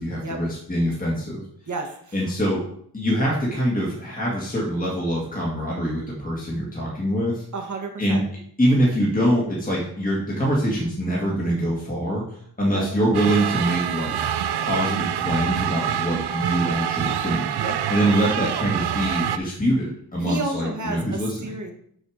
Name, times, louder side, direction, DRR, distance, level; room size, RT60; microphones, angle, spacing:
voice 1, 0.0-1.4 2.1-2.6 2.9-7.4 8.0-8.2 8.6-14.1 14.6-17.4 17.9-21.5, equal, 20° left, -4 dB, 1.8 m, -24 dB
voice 2, 1.7-2.2 7.5-8.2 12.7-12.9 17.6-17.8 20.2-21.7, right 2 dB, 45° right, 3 dB, 1.4 m, -31 dB
sound 1, 13.1-19.4, right 9 dB, 80° right, 0.5 m, -26 dB
6.6 x 4.3 x 6.3 m, 0.66 s
wide cardioid pair, 125°, 39 cm